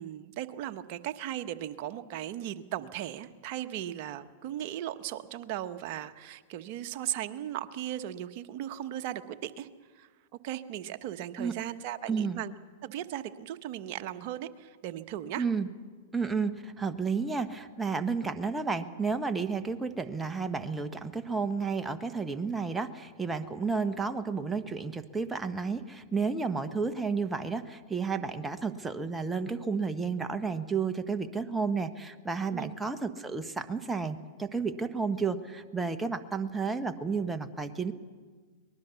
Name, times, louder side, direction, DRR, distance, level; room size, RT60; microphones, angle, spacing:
voice 1, 0.0-9.7 9.9-10.1 10.4-12.5 12.8-15.5 32.5-32.7, right 12 dB, 50° right, 9 dB, 1.2 m, -37 dB
voice 2, 12.1-12.4 15.4-15.7 16.1-37.9, right 5 dB, 10° right, 8 dB, 1.3 m, -32 dB
24.0 x 20.0 x 7.0 m, 1.5 s
hypercardioid pair, 110°, 0 cm